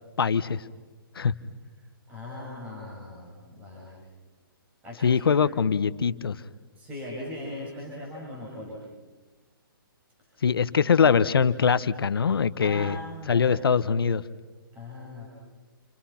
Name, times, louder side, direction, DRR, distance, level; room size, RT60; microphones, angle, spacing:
voice 1, 0.2-0.6 1.2-1.3 5.0-6.4 10.4-13.0 13.3-14.2, left 6 dB, 80° left, 14 dB, 1.2 m, -22 dB
voice 2, 2.1-4.0 4.8-5.4 6.8-8.8 10.3-10.4 12.6-13.5 14.7-15.3, left 1 dB, 15° right, -5 dB, 6.9 m, -39 dB
29.5 x 27.5 x 5.8 m, 1.2 s
hypercardioid pair, 155°, 12 cm